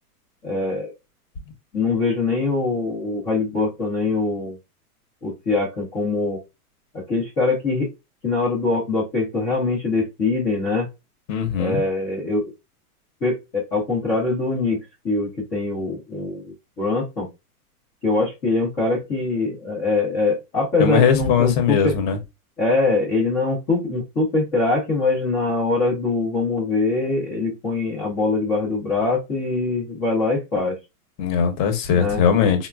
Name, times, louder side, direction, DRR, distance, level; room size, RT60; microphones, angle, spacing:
voice 1, 0.4-0.9 1.7-4.6 5.2-6.4 6.9-7.9 8.2-10.9 11.6-12.5 13.2-17.3 18.0-21.9 22.6-30.8 31.9-32.2, left 3 dB, 10° left, 0.3 m, -23 dB
voice 2, 11.3-11.8 20.8-22.2 31.2-32.7, left 7 dB, 30° left, 0.7 m, -19 dB
4.0 x 2.1 x 2.2 m
hypercardioid pair, 145°, 46 cm